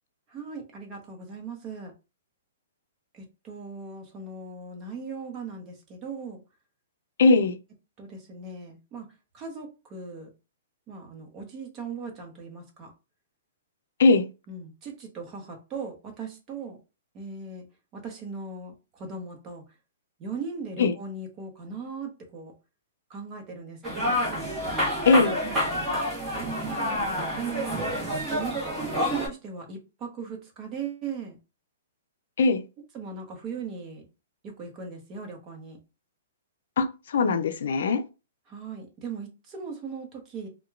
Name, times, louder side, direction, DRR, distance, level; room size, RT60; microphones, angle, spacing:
voice 1, 0.3-1.9 3.1-6.4 8.0-9.1 9.3-10.3 10.9-12.9 14.5-16.8 17.1-17.7 17.9-19.6 20.2-22.5 23.1-24.2 26.6-28.1 28.4-31.4 32.9-34.1 34.4-35.8 38.5-40.5, right 4 dB, 30° right, 0.9 m, -38 dB
voice 2, 7.2-7.6 14.0-14.3 20.8-20.9 25.1-25.4 32.4-32.6 36.8-38.0, left 3 dB, 70° left, 0.4 m, -20 dB
sound 1, 23.8-29.3, equal, 10° right, 1.2 m, -28 dB
2.8 x 2.2 x 2.4 m
hypercardioid pair, 135°, 0 cm